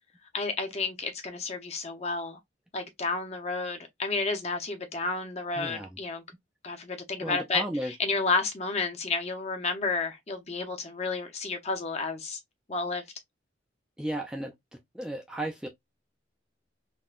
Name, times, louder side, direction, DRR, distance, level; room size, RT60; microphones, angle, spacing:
voice 1, 0.3-2.4 2.7-6.2 6.6-12.4 12.7-13.0, left 3 dB, 35° left, 0.7 m, -31 dB
voice 2, 5.6-6.0 7.2-7.9 14.0-14.5 14.9-15.7, right 1 dB, 5° right, 0.4 m, -34 dB
3.6 x 2.2 x 2.4 m
head